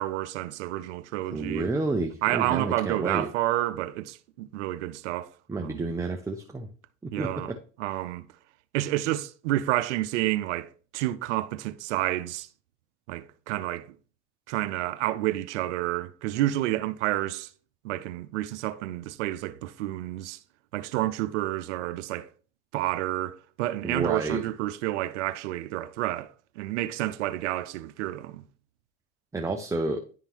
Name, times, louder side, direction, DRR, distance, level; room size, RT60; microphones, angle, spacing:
voice 1, 0.0-1.7 2.2-5.3 5.6-5.9 7.1-7.5 7.8-8.2 8.7-12.5 13.1-13.9 14.5-17.5 17.8-20.4 20.7-22.3 22.7-28.4, right 15 dB, 85° right, 0.6 m, -29 dB
voice 2, 1.3-3.3 5.5-6.7 7.0-7.6 23.8-24.4 29.3-30.0, right 3 dB, 10° right, 0.6 m, -30 dB
11.0 x 3.7 x 3.0 m
supercardioid pair, 100°, 34 cm